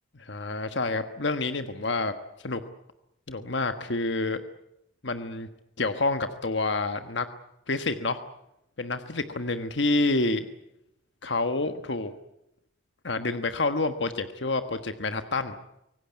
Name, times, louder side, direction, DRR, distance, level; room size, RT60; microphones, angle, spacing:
voice 1, 0.2-2.1 2.4-2.6 3.3-4.4 5.0-5.5 5.8-7.3 7.7-8.2 8.8-10.5 11.2-12.1 13.0-15.5, left 3 dB, 70° left, 9 dB, 1.4 m, -28 dB
25.5 x 18.0 x 9.5 m, 0.83 s
head